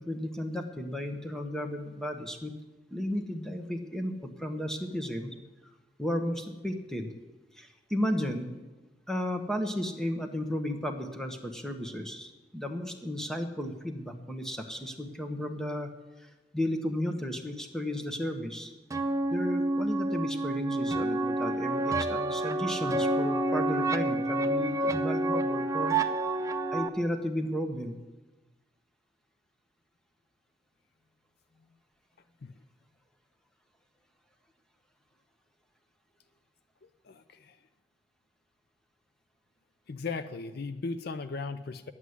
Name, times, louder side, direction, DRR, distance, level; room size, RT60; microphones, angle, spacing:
voice 1, 0.1-2.5 2.9-5.3 6.0-7.1 7.5-8.6 9.1-15.9 16.2-18.7 19.3-26.0 26.7-28.0, equal, 5° left, 5 dB, 1.1 m, -34 dB
sound 1, 18.9-26.9, right 2 dB, 20° right, 0.7 m, -28 dB
voice 2, 36.8-37.6 39.9-41.9, left 4 dB, 55° left, 11 dB, 0.6 m, -37 dB
11.0 x 8.3 x 9.5 m, 1.2 s
head